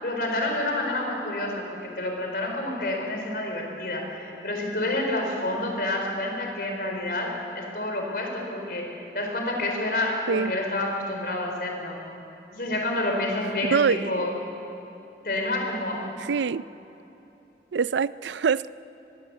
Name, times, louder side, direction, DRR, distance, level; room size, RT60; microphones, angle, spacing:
voice 1, 0.0-12.0 12.5-14.4 15.2-16.1, left 1 dB, 55° left, 2 dB, 4.4 m, -29 dB
voice 2, 13.7-14.1 16.3-16.6 17.7-18.7, right 6 dB, 85° right, 17 dB, 0.4 m, -24 dB
23.5 x 20.5 x 8.1 m, 2.9 s
head